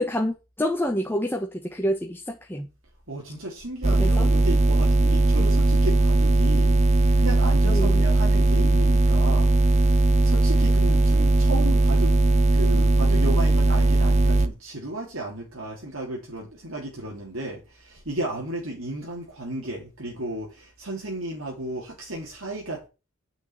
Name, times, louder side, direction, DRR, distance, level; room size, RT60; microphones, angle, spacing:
voice 1, 0.0-2.7 4.0-4.3 7.6-8.0, equal, 10° left, 1.1 m, -27 dB
voice 2, 3.1-12.2 12.5-22.9, right 1 dB, 65° right, 3.1 m, -34 dB
sound 1, 3.8-14.5, right 2 dB, 30° right, 0.8 m, -19 dB
9.7 x 6.3 x 7.2 m
head